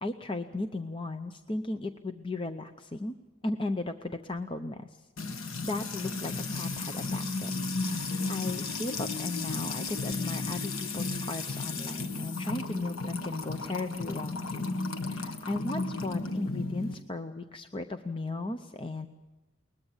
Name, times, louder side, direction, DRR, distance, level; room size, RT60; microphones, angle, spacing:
voice 1, 0.0-3.1 3.4-4.9 5.4-7.5 7.8-14.8 15.0-19.1, left 2 dB, 25° left, 8 dB, 0.6 m, -36 dB
Music / Water tap faucet / Trickle dribble, 5.2-16.9, left 3 dB, 80° left, 1.5 m, -34 dB
21.5 x 20.5 x 7.2 m, 1.1 s
head